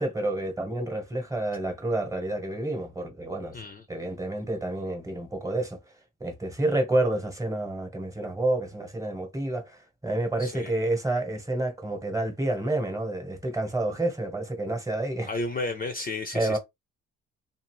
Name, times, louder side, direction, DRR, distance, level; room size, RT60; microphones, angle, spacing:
voice 1, 0.0-3.6 3.9-5.8 6.2-15.3 16.3-16.6, right 2 dB, 10° right, 1.1 m, -29 dB
voice 2, 3.5-3.9 10.4-10.7 15.3-16.6, left 2 dB, 30° left, 0.5 m, -32 dB
2.7 x 2.5 x 3.0 m
cardioid pair, 90°, 30 cm